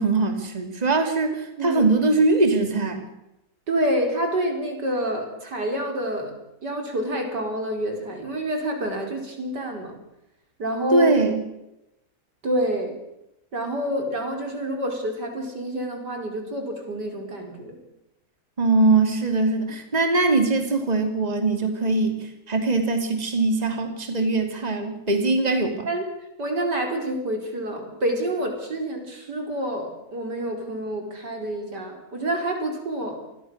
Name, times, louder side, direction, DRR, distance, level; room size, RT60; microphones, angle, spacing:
voice 1, 0.0-3.0 10.9-11.4 18.6-25.9, right 3 dB, 25° right, 6 dB, 2.8 m, -22 dB
voice 2, 3.7-6.3 6.6-10.0 10.6-11.2 12.4-13.0 13.5-17.8 25.9-26.0 26.4-33.2, right 1 dB, 85° right, 3 dB, 5.5 m, -27 dB
28.0 x 21.0 x 6.6 m, 0.88 s
omnidirectional pair, 1.8 m